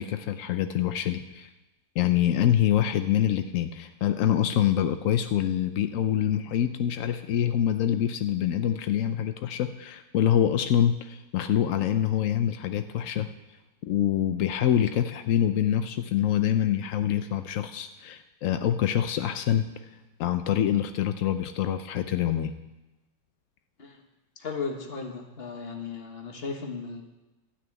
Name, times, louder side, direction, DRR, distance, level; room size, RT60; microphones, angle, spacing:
voice 1, 0.0-1.5 2.0-13.3 13.9-19.7 20.2-22.5, left 10 dB, 80° left, 9 dB, 0.7 m, -25 dB
voice 2, 24.4-27.0, left 4 dB, 35° left, 3 dB, 1.5 m, -35 dB
13.0 x 6.3 x 9.2 m, 1.0 s
omnidirectional pair, 2.0 m